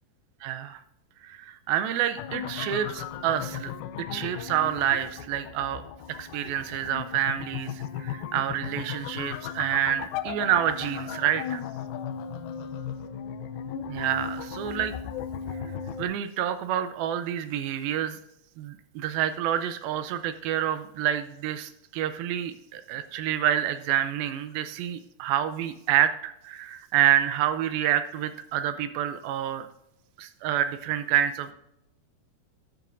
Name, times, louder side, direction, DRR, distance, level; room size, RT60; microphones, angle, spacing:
voice 1, 0.4-0.8 1.2-3.7 4.0-5.8 6.2-11.6 13.9-14.9 16.0-18.2 18.6-29.7 30.2-31.5, right 10 dB, 85° right, 11 dB, 2.3 m, -28 dB
sound 1, 2.2-16.0, left 8 dB, 85° left, 2.2 m, -36 dB
12.5 x 9.2 x 2.5 m, 0.81 s
omnidirectional pair, 4.6 m